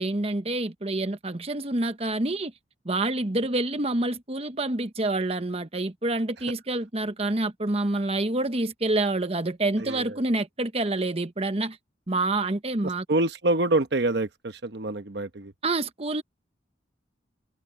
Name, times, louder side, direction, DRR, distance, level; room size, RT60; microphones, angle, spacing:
voice 1, 0.0-2.5 2.8-11.8 12.1-13.0 15.6-16.2, right 2 dB, 35° right, 1.1 m, -27 dB
voice 2, 9.8-10.2 13.1-15.5, right 2 dB, 65° right, 1.0 m, -26 dB
head